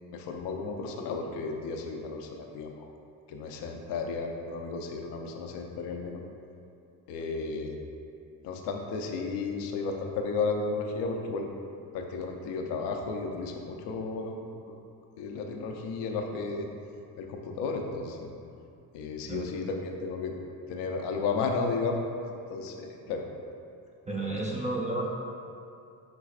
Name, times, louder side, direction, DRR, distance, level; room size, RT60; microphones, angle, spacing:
voice 1, 0.1-2.9 3.3-6.2 7.1-7.8 8.4-11.5 11.9-14.4 15.2-16.7 17.2-18.3 18.9-20.4 20.7-22.0 22.5-23.3, left 4 dB, 80° left, 3 dB, 0.6 m, -33 dB
voice 2, 24.1-25.1, right 2 dB, 20° right, -4 dB, 0.4 m, -31 dB
4.6 x 3.9 x 2.4 m, 2.5 s
cardioid pair, 85°, 41 cm